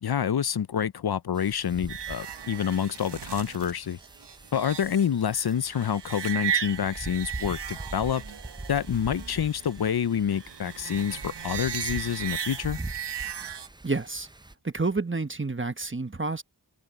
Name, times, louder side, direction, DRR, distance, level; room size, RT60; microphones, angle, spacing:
voice 1, 0.0-4.0 4.5-8.2 8.7-12.8, left 8 dB, 65° left, 0.5 m, -27 dB
Wind, 1.3-14.5, right 2 dB, 10° right, 0.5 m, -43 dB
sound 1, 1.9-13.7, right 8 dB, 80° right, 0.8 m, -36 dB
voice 2, 13.8-14.3 14.6-16.4, right 3 dB, 30° right, 1.1 m, -29 dB
open air
wide cardioid pair, 45°, 41 cm